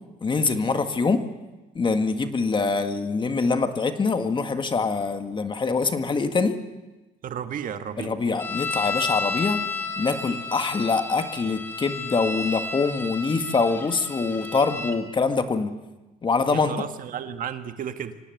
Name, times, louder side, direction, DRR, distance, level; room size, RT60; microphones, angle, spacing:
voice 1, 0.2-1.2 1.7-6.6 8.0-9.6 10.0-15.8 16.2-16.7, left 4 dB, 30° left, 7 dB, 1.7 m, -24 dB
voice 2, 7.2-8.1 16.5-18.2, right 8 dB, 55° right, 8 dB, 1.6 m, -33 dB
sound 1, 8.4-15.0, left 3 dB, 15° left, 2.6 m, -32 dB
25.0 x 18.0 x 7.9 m, 1.1 s
cardioid pair, 110°, 17 cm